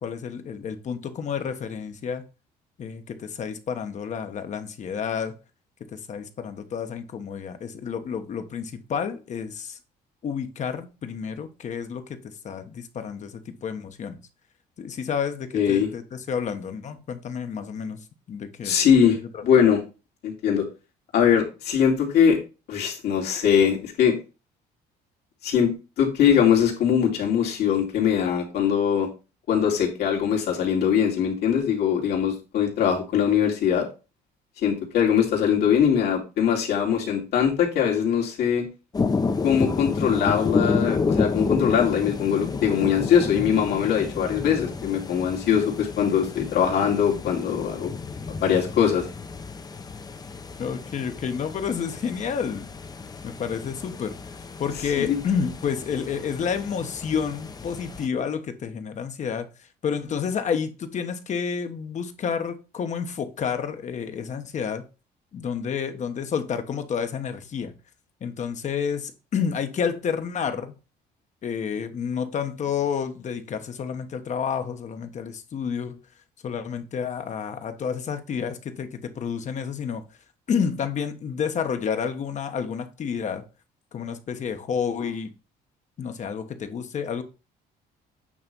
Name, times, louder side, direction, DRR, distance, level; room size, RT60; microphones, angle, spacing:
voice 1, 0.0-2.3 2.8-5.4 5.9-9.8 10.2-14.2 14.8-18.8 19.3-19.4 50.6-52.7 53.2-64.9 65.3-67.7 68.2-70.8 71.4-76.0 76.4-80.0 80.5-83.4 83.9-85.3 86.0-87.2, left 7 dB, 45° left, 1.1 m, -30 dB
voice 2, 15.5-15.9 18.6-19.2 19.4-19.8 20.2-20.7 21.1-22.4 22.7-24.2 25.4-29.1 29.5-33.9 34.6-38.7 39.4-47.9 48.4-49.0 55.0-55.2, left 8 dB, 70° left, 2.6 m, -21 dB
sound 1, 38.9-58.1, left 4 dB, 25° left, 0.7 m, -30 dB
8.7 x 3.3 x 5.4 m
cardioid pair, 110°, 17 cm